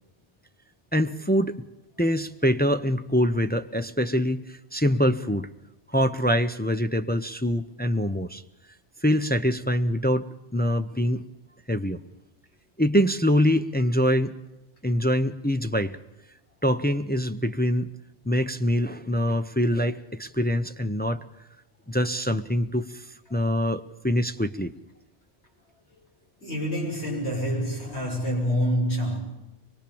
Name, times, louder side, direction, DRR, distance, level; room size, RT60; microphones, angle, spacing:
voice 1, 0.9-1.6 2.0-5.5 5.9-8.4 9.0-11.2 11.7-12.0 12.8-14.4 14.8-16.0 16.6-17.9 18.3-21.2 21.9-23.0 23.3-24.7, equal, 10° left, 0.6 m, -24 dB
voice 2, 26.4-29.2, equal, 75° left, 6.5 m, -27 dB
24.0 x 21.5 x 7.0 m
omnidirectional pair, 1.1 m